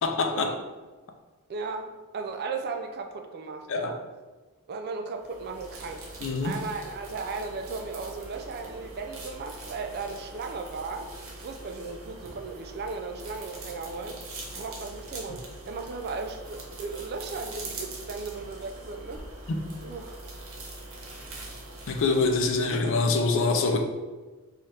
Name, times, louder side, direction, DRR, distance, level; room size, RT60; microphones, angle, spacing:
voice 1, 0.0-0.5 3.7-3.9 6.2-6.6 19.5-19.6 21.9-23.8, left 3 dB, 60° left, 4 dB, 0.4 m, -25 dB
voice 2, 1.5-4.0 4.7-6.0 6.4-11.1 11.4-14.2 14.5-19.4 19.8-20.2, right 4 dB, 45° right, 5 dB, 0.4 m, -36 dB
sound 1, 5.2-23.0, right 2 dB, 65° right, 0.9 m, -43 dB
3.2 x 2.4 x 4.2 m, 1.3 s
head